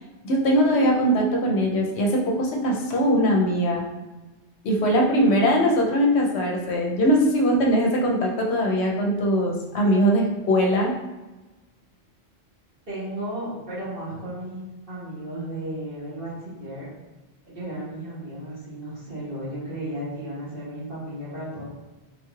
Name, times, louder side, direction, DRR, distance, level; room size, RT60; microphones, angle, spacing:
voice 1, 0.2-3.8 4.6-10.9, equal, 75° left, 0 dB, 0.8 m, -21 dB
voice 2, 12.9-14.6 14.9-16.9 17.5-21.6, right 1 dB, 55° right, -10 dB, 1.6 m, -34 dB
3.6 x 3.0 x 2.3 m, 1.1 s
omnidirectional pair, 1.2 m